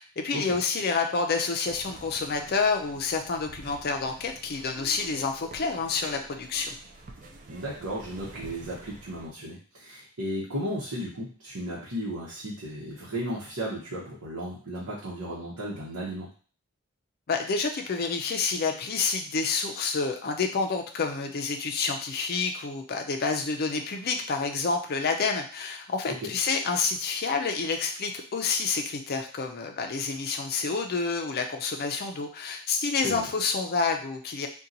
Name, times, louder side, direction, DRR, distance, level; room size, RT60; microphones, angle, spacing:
voice 1, 0.0-6.7 17.3-34.5, left 4 dB, 45° left, 4 dB, 0.4 m, -28 dB
sound 1, 1.7-9.3, right 2 dB, 35° right, 0.4 m, -48 dB
voice 2, 7.5-16.3 26.1-26.3 33.0-33.3, equal, 75° right, -7 dB, 0.9 m, -35 dB
2.8 x 2.2 x 3.8 m, 0.41 s
head